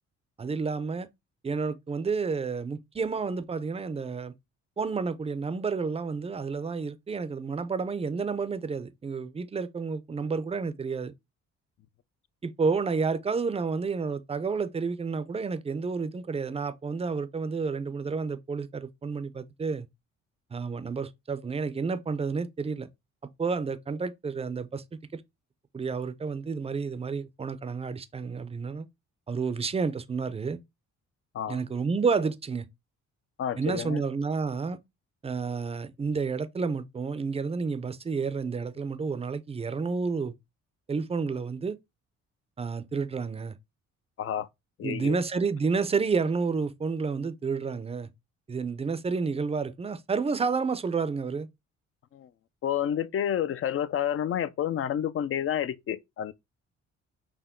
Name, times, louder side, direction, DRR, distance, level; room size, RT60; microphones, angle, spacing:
voice 1, 0.4-1.1 1.4-4.3 4.8-11.1 12.4-19.9 20.5-22.9 23.4-24.8 25.1-25.2 25.7-28.9 29.3-30.6 31.5-32.6 33.6-34.8 35.2-40.3 40.9-41.8 42.6-43.6 44.8-48.1 48.5-51.5, right 5 dB, 20° right, 0.5 m, -30 dB
voice 2, 33.4-34.0 44.2-44.5 44.8-45.2 52.1-52.3 52.6-56.3, left 10 dB, 45° left, 0.5 m, -29 dB
5.8 x 2.1 x 3.7 m
cardioid pair, 90°, 30 cm